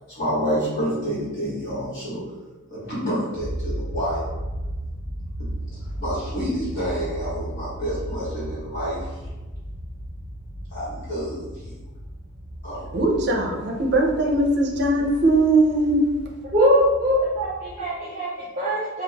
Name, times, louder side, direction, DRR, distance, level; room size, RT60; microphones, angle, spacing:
voice 1, 0.1-2.2 2.7-4.2 5.4-9.3 10.7-11.7 12.6-12.9 17.8-17.9, equal, 45° left, -13 dB, 1.3 m, -29 dB
sound 1, 3.3-17.8, equal, 65° left, 1.2 m, -35 dB
voice 2, 12.9-16.1, right 2 dB, 55° right, 1 dB, 0.6 m, -20 dB
voice 3, 16.5-19.0, equal, 30° right, -9 dB, 0.9 m, -22 dB
3.7 x 2.3 x 3.4 m, 1.2 s
head